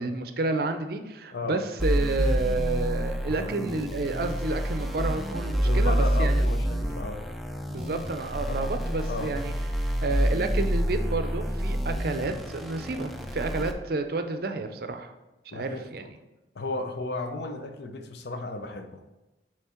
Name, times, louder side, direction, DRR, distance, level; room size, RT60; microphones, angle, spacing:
voice 1, 0.0-6.4 7.7-15.1 15.5-16.1, right 3 dB, 60° right, 7 dB, 0.5 m, -30 dB
voice 2, 1.3-1.6 5.6-7.2 8.5-8.7 9.1-9.3 10.0-10.2 15.5-16.1 16.5-19.1, left 2 dB, 70° left, 7 dB, 0.6 m, -34 dB
sound 1, 1.8-13.7, equal, ahead, 0.4 m, -28 dB
7.0 x 3.2 x 4.4 m, 1.0 s
head